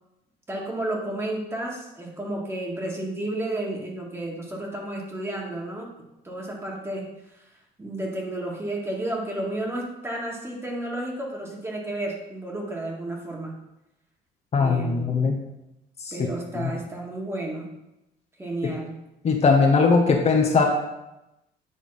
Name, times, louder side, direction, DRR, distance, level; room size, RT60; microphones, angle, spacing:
voice 1, 0.5-5.9 6.2-7.4 7.8-13.5 14.6-15.3 16.1-17.7 18.4-19.0, right 1 dB, 15° right, -1 dB, 1.9 m, -32 dB
voice 2, 14.5-15.4 16.5-16.7 18.6-18.7 19.2-20.6, left 4 dB, 40° left, 2 dB, 1.0 m, -20 dB
9.5 x 3.4 x 5.7 m, 0.91 s
cardioid pair, 110°, 17 cm